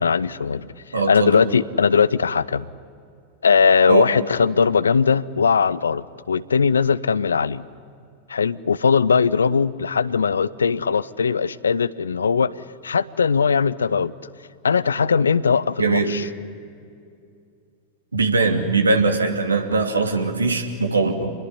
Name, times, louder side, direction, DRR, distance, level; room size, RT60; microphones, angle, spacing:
voice 1, 0.0-2.7 3.4-7.6 8.3-12.5 12.8-14.1 14.6-16.3, left 6 dB, 70° left, 18 dB, 0.7 m, -19 dB
voice 2, 0.9-1.3 3.9-4.1 15.8-16.1 18.1-21.3, right 3 dB, 75° right, 4 dB, 2.6 m, -21 dB
28.0 x 21.0 x 9.9 m, 2.4 s
figure-of-eight pair, 90°, 0 cm